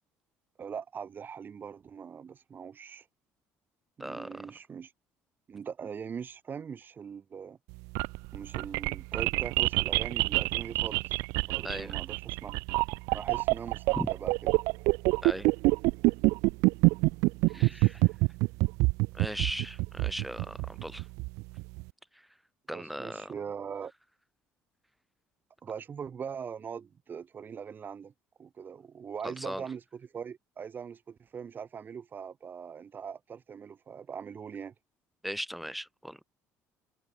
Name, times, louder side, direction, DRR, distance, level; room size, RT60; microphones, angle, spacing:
voice 1, 0.6-3.1 4.0-4.9 5.5-7.6 8.3-11.2 11.5-12.6 13.1-14.5 17.5-17.8 22.7-23.9 25.6-28.1 28.4-34.7, right 7 dB, 35° right, 7.0 m, -41 dB
voice 2, 4.0-4.4 11.6-12.0 14.0-14.1 15.2-15.5 17.5-18.0 19.1-21.1 22.1-22.3 22.7-23.3 29.2-29.6 35.2-36.2, equal, ahead, 5.9 m, -38 dB
sound 1, 7.7-21.8, right 25 dB, 85° right, 1.5 m, -26 dB
cardioid pair, 110°, 5 cm